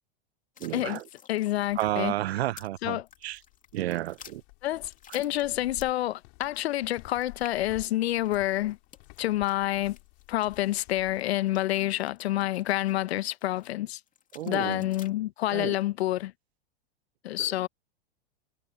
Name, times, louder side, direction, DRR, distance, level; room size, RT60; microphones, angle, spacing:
sound 1, 0.6-2.8 3.1-6.1 6.4-13.7 14.1-15.1, left 8 dB, 25° left, 2.6 m, -53 dB
voice 1, 0.6-1.0 1.8-3.0 3.2-3.4 3.7-4.4 14.3-14.9 15.5-15.7, right 15 dB, 75° right, 1.0 m, -31 dB
voice 2, 1.3-2.1 2.8-3.1 4.6-8.8 9.2-10.0 10.3-14.0 14.4-16.3 17.2-17.7, left 15 dB, 75° left, 1.0 m, -28 dB
sound 2, 1.7-11.2, left 33 dB, 50° left, 5.1 m, -53 dB
hypercardioid pair, 115°, 32 cm